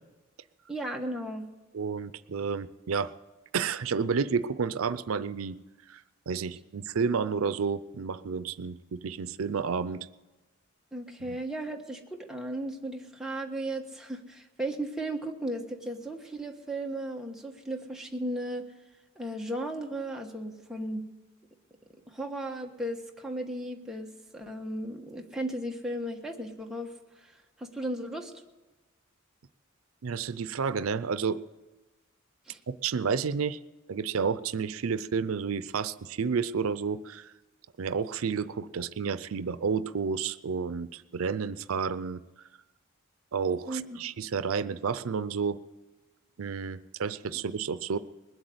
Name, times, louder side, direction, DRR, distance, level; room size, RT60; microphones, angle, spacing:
voice 1, 0.7-1.5 10.9-18.6 19.2-21.0 22.1-26.9 27.6-28.3 32.5-32.6 43.7-44.0, right 1 dB, 5° right, 1 dB, 1.3 m, -35 dB
voice 2, 1.7-3.1 3.5-5.6 5.9-10.1 11.2-11.4 30.0-31.4 32.7-33.6 33.9-37.3 37.8-42.2 43.3-45.6 46.4-48.0, right 5 dB, 90° right, 15 dB, 0.5 m, -31 dB
20.5 x 8.0 x 7.9 m, 1.2 s
head